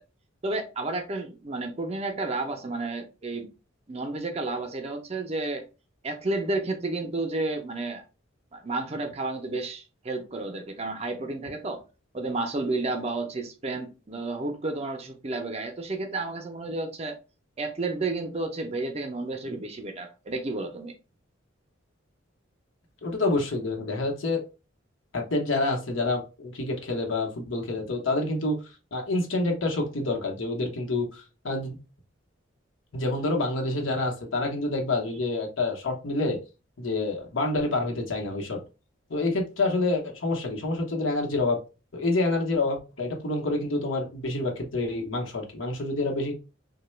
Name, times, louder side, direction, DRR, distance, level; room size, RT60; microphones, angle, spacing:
voice 1, 0.4-3.5 3.9-5.6 6.0-8.0 8.5-11.8 12.1-17.2 17.6-20.9, right 2 dB, 30° right, 0.5 m, -31 dB
voice 2, 23.0-24.4 25.1-28.6 28.9-31.8 32.9-36.4 36.8-38.6 39.1-41.6 41.9-46.3, left 2 dB, 75° left, 0.9 m, -27 dB
3.1 x 2.2 x 3.1 m
head